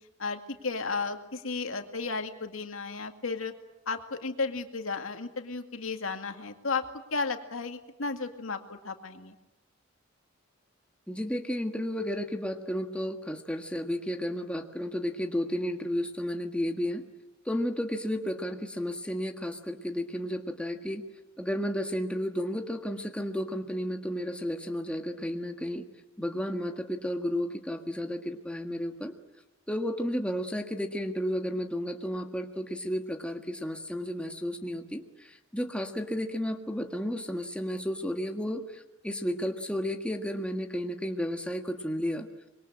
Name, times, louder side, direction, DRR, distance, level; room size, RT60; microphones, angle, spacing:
voice 1, 0.2-3.5 3.9-9.3, left 4 dB, 85° left, 5 dB, 2.2 m, -34 dB
voice 2, 11.1-17.0 17.4-21.0 21.4-25.9 26.2-29.1 29.7-42.3, equal, 5° left, 4 dB, 1.6 m, -32 dB
25.5 x 22.5 x 8.8 m, 0.98 s
head